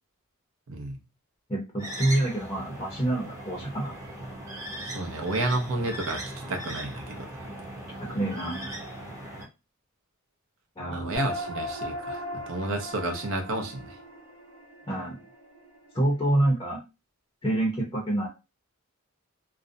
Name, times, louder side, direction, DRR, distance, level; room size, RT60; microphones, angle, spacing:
voice 1, 0.7-1.0 4.9-6.2 6.5-7.5 10.9-14.0, right 2 dB, 65° right, 0.6 m, -31 dB
voice 2, 1.5-3.9 8.0-8.7 10.8-11.1 14.9-15.2 15.9-16.8 17.4-18.3, right 1 dB, 20° left, 0.5 m, -27 dB
sound 1, 1.8-9.4, right 1 dB, 15° right, 0.7 m, -38 dB
sound 2, 11.1-15.9, left 1 dB, 85° right, 1.1 m, -37 dB
2.4 x 2.0 x 2.5 m
head